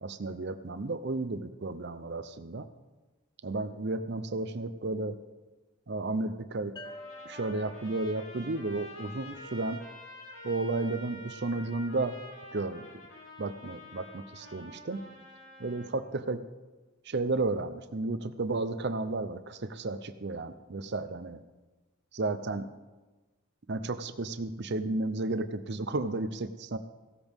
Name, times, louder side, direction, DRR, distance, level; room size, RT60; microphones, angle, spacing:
voice 1, 0.0-2.7 3.4-5.2 5.9-6.8 7.2-9.8 10.4-12.2 12.5-12.8 13.4-15.1 15.6-16.4 17.1-21.4 22.1-22.7 23.7-26.8, right 2 dB, 50° right, 11 dB, 0.6 m, -33 dB
Trumpet, 6.8-15.9, left 1 dB, 60° left, 3.0 m, -48 dB
sound 1, 6.8-10.2, left 1 dB, 20° left, 0.7 m, -51 dB
16.0 x 13.0 x 3.6 m, 1.2 s
head